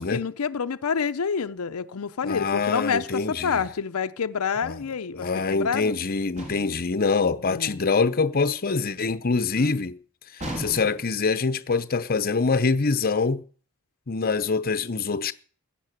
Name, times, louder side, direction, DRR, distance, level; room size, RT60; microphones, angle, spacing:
voice 1, 0.0-6.0 7.4-7.8 9.6-9.8, left 6 dB, 80° left, 0.6 m, -28 dB
voice 2, 2.2-3.6 4.6-4.8 5.1-10.0 10.3-13.4 14.1-15.3, left 4 dB, 45° left, 0.8 m, -25 dB
sound 1, 6.4-6.9 10.4-11.2, right 1 dB, 35° right, 3.4 m, -35 dB
16.0 x 10.0 x 6.7 m
head